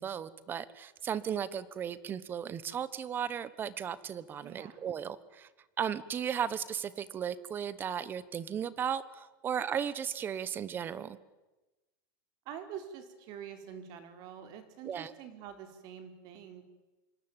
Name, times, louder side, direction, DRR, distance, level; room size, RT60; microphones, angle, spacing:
voice 1, 0.0-5.5 5.8-11.2 14.9-15.1, right 8 dB, 20° right, 17 dB, 1.2 m, -35 dB
voice 2, 4.4-4.8 12.4-16.6, right 8 dB, 35° right, 8 dB, 4.3 m, -46 dB
27.0 x 24.5 x 9.0 m, 1.1 s
supercardioid pair, 170°, 11 cm